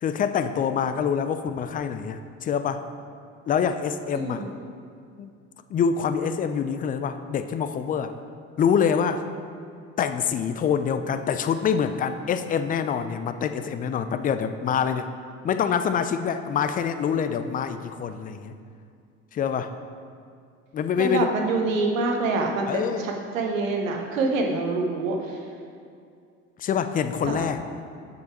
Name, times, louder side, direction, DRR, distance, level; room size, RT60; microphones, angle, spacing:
voice 1, 0.0-2.8 3.5-4.5 5.2-5.3 5.7-8.1 8.6-9.2 10.0-15.1 15.4-18.5 19.3-19.7 20.7-21.3 22.7-23.1 26.6-27.8, left 7 dB, 25° left, 10 dB, 0.3 m, -25 dB
voice 2, 4.1-4.5 21.0-25.4 27.2-27.5, right 3 dB, 80° right, 2 dB, 1.0 m, -26 dB
6.7 x 5.5 x 4.5 m, 2.3 s
figure-of-eight pair, 60°, 39 cm